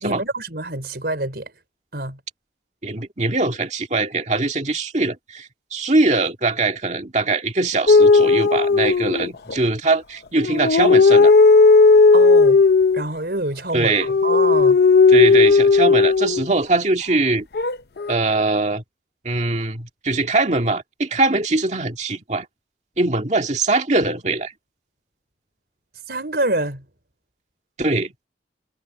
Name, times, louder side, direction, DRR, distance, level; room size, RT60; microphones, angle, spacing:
voice 1, 0.0-1.5 1.9-2.2 12.1-12.6 12.9-14.8 26.1-26.8, right 2 dB, 60° right, 4.8 m, -26 dB
voice 2, 2.8-11.3 13.7-14.1 15.1-17.5 18.1-18.8 19.2-22.5 23.0-24.5 27.8-28.1, right 2 dB, 40° right, 2.0 m, -22 dB
sound 1, 7.9-9.6 10.4-13.0 13.9-16.5 17.5-18.1, left 4 dB, 65° left, 0.6 m, -14 dB
head